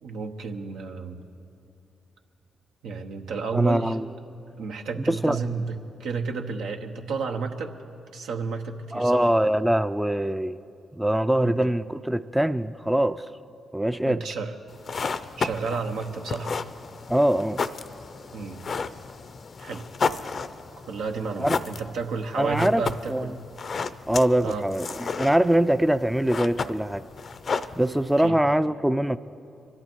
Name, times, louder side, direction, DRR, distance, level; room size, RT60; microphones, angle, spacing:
voice 1, 0.0-1.2 2.8-3.9 4.6-7.7 8.1-9.3 11.4-11.5 14.1-14.5 15.4-16.5 18.3-18.6 19.6-19.8 20.9-23.3 24.4-24.6 28.2-28.4, right 4 dB, 80° right, 4 dB, 1.0 m, -31 dB
voice 2, 3.5-4.1 5.0-5.4 8.9-10.6 10.9-13.3 13.7-14.3 17.1-17.6 21.4-21.6 22.4-22.8 23.1-23.3 24.1-27.0 27.8-29.2, right 1 dB, 5° right, 12 dB, 0.4 m, -23 dB
sound 1, 14.7-28.3, left 5 dB, 55° left, 0.5 m, -33 dB
24.5 x 11.5 x 4.5 m, 2.6 s
supercardioid pair, 55°, 0 cm